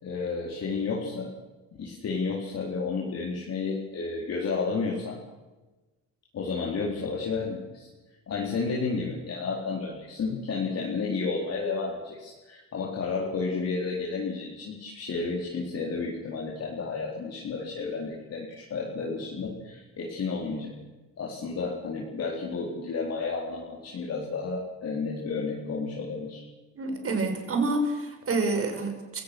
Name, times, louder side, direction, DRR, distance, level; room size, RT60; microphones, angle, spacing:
voice 1, 0.0-1.3 1.8-5.2 6.3-7.9 8.3-20.7 21.2-26.4, left 4 dB, 55° left, -3 dB, 4.4 m, -31 dB
voice 2, 26.8-29.2, right 3 dB, 50° right, 4 dB, 5.7 m, -28 dB
29.5 x 17.0 x 6.3 m, 1.2 s
cardioid pair, 90°, 30 cm